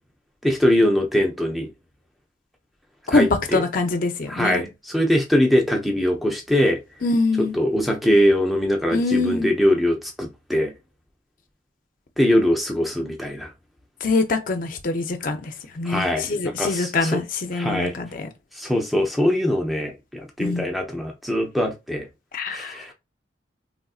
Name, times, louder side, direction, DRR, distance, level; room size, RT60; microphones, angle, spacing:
voice 1, 0.4-1.7 3.1-3.6 4.3-6.8 7.4-10.7 12.2-13.5 15.8-17.2 17.5-17.9 18.6-22.1 22.5-22.9, equal, ahead, 0.5 m, -22 dB
voice 2, 3.5-4.6 7.0-7.5 8.9-9.5 14.0-18.3 20.4-20.7 22.3-22.8, left 3 dB, 45° left, 0.5 m, -24 dB
3.4 x 2.5 x 2.3 m
head